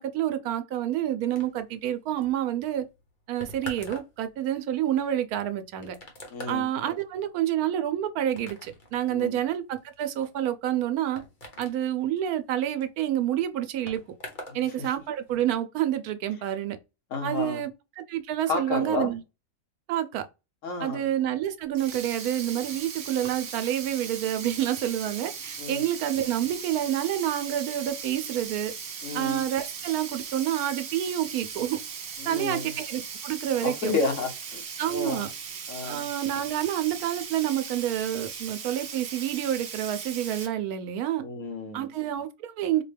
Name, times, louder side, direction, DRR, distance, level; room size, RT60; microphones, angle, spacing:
voice 1, 0.0-2.8 3.3-6.0 6.5-11.2 11.6-14.0 14.5-16.8 17.2-17.7 18.0-19.2 19.9-20.3 20.8-28.7 29.1-31.8 32.3-33.9 34.8-35.3 35.9-41.2 41.7-42.8, right 11 dB, 85° right, 1.1 m, -28 dB
sound 1, 1.4-14.6 14.9-15.5, left 1 dB, 40° left, 1.0 m, -46 dB
voice 2, 6.3-6.7 9.1-9.4 14.5-14.6 17.1-17.6 18.5-19.1 20.6-21.0 25.6-25.8 29.0-29.4 32.2-32.7 33.6-34.6 34.9-35.3 35.7-36.0 41.2-41.9, left 3 dB, 60° left, 1.2 m, -31 dB
Sink (filling or washing), 21.6-40.5, right 6 dB, 55° right, 0.8 m, -38 dB
4.2 x 2.2 x 3.3 m
omnidirectional pair, 1.5 m